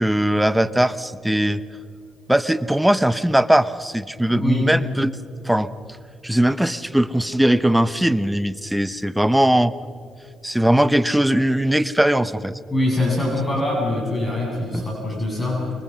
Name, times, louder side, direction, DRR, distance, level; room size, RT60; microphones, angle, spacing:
voice 1, 0.0-1.6 2.3-5.1 5.4-5.7 6.2-9.8 10.4-12.6 14.7-14.8, right 1 dB, 5° right, 14 dB, 0.7 m, -19 dB
voice 2, 4.3-4.7 12.7-15.7, left 1 dB, 20° left, -3 dB, 7.8 m, -23 dB
25.0 x 23.5 x 5.6 m, 2.3 s
cardioid pair, 90°, 0 cm